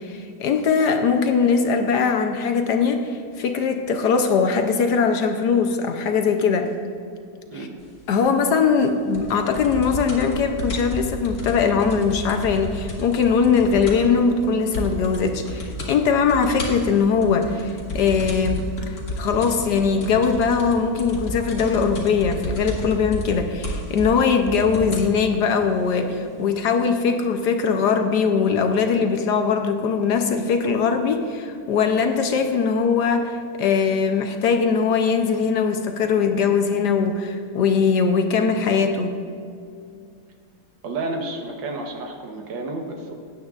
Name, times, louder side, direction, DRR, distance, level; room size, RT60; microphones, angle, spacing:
voice 1, 0.0-6.7 7.5-7.7 8.1-18.6 18.9-39.2, left 5 dB, 70° left, 6 dB, 1.2 m, -21 dB
sound 1, 9.1-14.2 14.4-14.5 14.7-15.2 15.5-15.9 16.3-25.1 25.9-26.0, left 1 dB, 55° left, 2.1 m, -31 dB
voice 2, 40.8-43.2, right 2 dB, 75° right, 3 dB, 1.8 m, -31 dB
17.5 x 8.9 x 2.4 m, 2.4 s
omnidirectional pair, 2.1 m